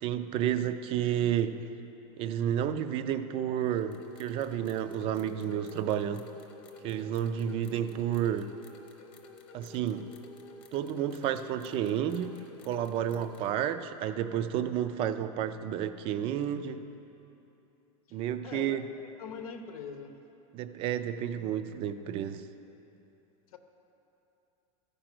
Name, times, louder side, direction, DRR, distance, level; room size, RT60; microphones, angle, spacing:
voice 1, 0.0-1.6 2.2-6.3 6.8-8.5 9.5-10.1 10.7-12.4 12.6-16.8 18.1-18.8 20.5-22.4, right 10 dB, 30° right, 11 dB, 0.4 m, -31 dB
sound 1, 3.7-13.6, left 3 dB, 30° left, 1.0 m, -51 dB
voice 2, 18.4-18.8 19.2-20.2 23.5-23.6, left 6 dB, 85° left, 6 dB, 0.8 m, -42 dB
14.0 x 5.1 x 6.0 m, 2.9 s
supercardioid pair, 155°, 18 cm